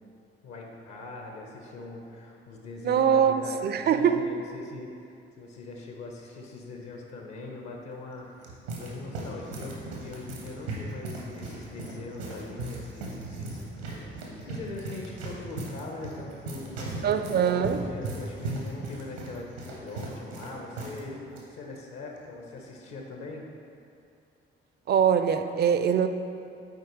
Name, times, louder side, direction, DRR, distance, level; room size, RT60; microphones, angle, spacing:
voice 1, 0.4-23.5, left 2 dB, 60° left, 1 dB, 1.0 m, -41 dB
voice 2, 2.8-4.3 17.0-17.8 24.9-26.1, right 8 dB, 35° right, 9 dB, 0.4 m, -23 dB
sound 1, 8.1-21.0 21.3-21.4 22.2-22.5, right 2 dB, 80° right, 0.9 m, -38 dB
7.8 x 4.5 x 3.1 m, 2.5 s
figure-of-eight pair, 40°, 31 cm